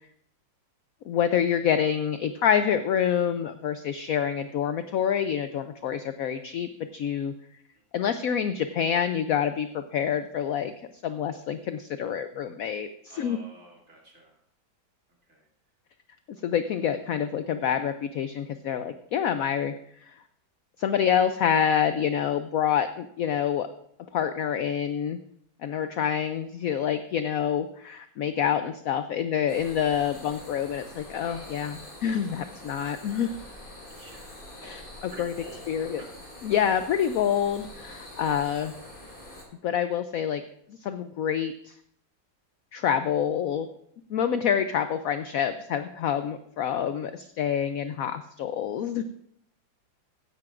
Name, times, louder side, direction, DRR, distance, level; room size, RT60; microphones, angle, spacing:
voice 1, 1.0-7.3 7.9-10.7 11.0-13.4 16.4-19.7 20.0-20.1 20.8-23.7 24.1-25.2 25.6-33.4 34.6-35.3 35.7-36.0 36.4-38.7 39.6-40.4 40.8-41.8 42.7-43.7 44.1-49.0, left 8 dB, 75° left, 10 dB, 0.8 m, -27 dB
voice 2, 13.1-14.4 15.3-15.4 31.3-32.0 33.9-36.1 37.9-38.2, right 1 dB, 45° right, -2 dB, 2.9 m, -49 dB
sound 1, 29.5-39.4, left 1 dB, 25° left, 2.6 m, -45 dB
15.0 x 10.5 x 2.5 m, 0.69 s
omnidirectional pair, 2.0 m